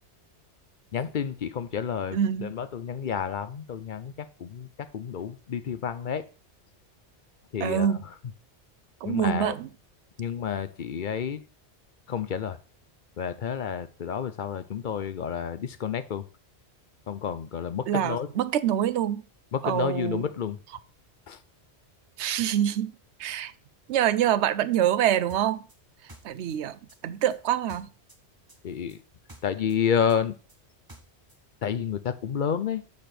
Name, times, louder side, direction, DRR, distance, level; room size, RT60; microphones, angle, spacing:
voice 1, 0.9-6.2 7.5-8.1 9.0-9.5 10.2-11.4 12.1-12.6 13.2-16.3 17.1-18.3 19.5-20.6 21.3-21.4 28.6-29.0 29.4-30.4 31.6-32.9, left 7 dB, 55° left, 0.7 m, -30 dB
voice 2, 2.1-2.5 7.6-8.0 9.0-9.7 17.9-19.2 19.6-20.2 22.2-22.9 23.2-23.5 23.9-25.6 26.2-27.9, right 10 dB, 85° right, 0.9 m, -25 dB
sound 1, 25.3-28.2 28.5-31.4, right 1 dB, 20° right, 1.2 m, -51 dB
6.8 x 5.1 x 5.9 m
omnidirectional pair, 1.1 m